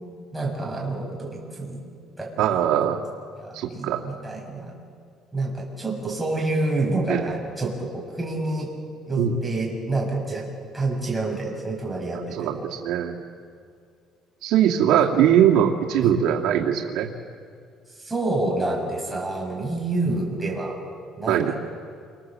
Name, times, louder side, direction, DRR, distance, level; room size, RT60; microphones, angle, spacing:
voice 1, 0.3-1.8 2.2-2.5 2.7-2.8 3.4-4.7 5.3-8.7 9.1-10.4 10.7-12.7 16.0-16.1 18.0-20.7 21.2-21.4, right 2 dB, 5° right, -3 dB, 6.6 m, -28 dB
voice 2, 2.4-3.0 3.5-4.0 7.1-7.3 9.2-9.4 12.3-13.2 14.4-17.1 21.3-21.5, right 10 dB, 80° right, 1 dB, 2.4 m, -21 dB
29.5 x 26.5 x 7.7 m, 2.2 s
cardioid pair, 160°, 0 cm